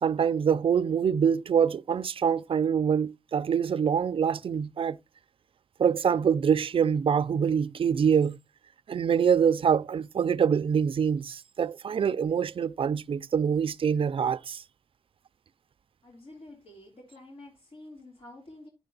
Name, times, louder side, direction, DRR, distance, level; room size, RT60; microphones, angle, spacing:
voice 1, 0.0-5.0 5.8-8.4 8.9-14.6, right 7 dB, 65° right, 0.4 m, -25 dB
voice 2, 16.0-18.7, left 1 dB, 75° left, 2.9 m, -49 dB
10.0 x 6.7 x 3.8 m
wide cardioid pair, 145°, 10 cm